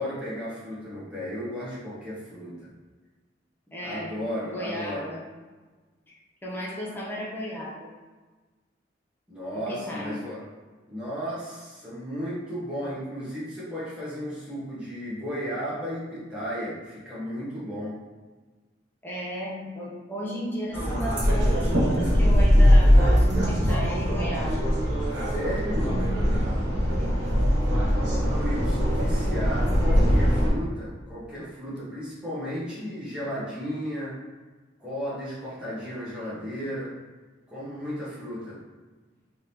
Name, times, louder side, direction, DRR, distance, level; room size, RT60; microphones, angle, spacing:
voice 1, 0.0-2.7 3.8-5.1 9.3-10.4 10.9-18.0 25.1-26.0 28.0-34.2 34.8-36.9 37.5-38.6, equal, 5° right, -10 dB, 1.3 m, -34 dB
voice 2, 3.7-4.2 4.5-5.2 6.4-7.9 9.7-10.2 19.0-24.7 26.9-27.5, equal, 10° left, -5 dB, 0.7 m, -35 dB
sound 1, 20.7-30.5, equal, 70° right, 1.2 m, -21 dB
3.6 x 3.5 x 2.9 m, 1.3 s
head